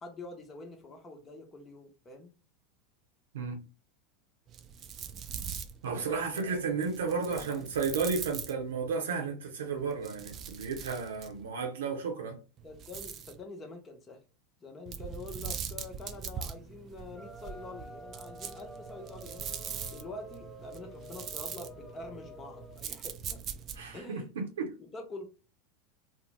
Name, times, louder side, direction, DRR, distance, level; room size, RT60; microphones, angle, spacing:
voice 1, 0.0-2.3 5.9-6.8 7.3-7.7 12.6-14.2 14.6-19.6 19.9-23.4 23.9-24.3 24.8-25.2, left 2 dB, 25° left, 0.8 m, -46 dB
sound 1, 4.5-8.9 9.8-11.5 12.6-13.4 14.9-24.0, right 7 dB, 40° right, 0.4 m, -42 dB
voice 2, 5.8-12.4 23.8-24.7, right 5 dB, 75° right, 0.7 m, -33 dB
sound 2, 17.1-22.8, left 1 dB, 5° right, 0.6 m, -49 dB
2.6 x 2.0 x 3.2 m
hypercardioid pair, 85°, 0 cm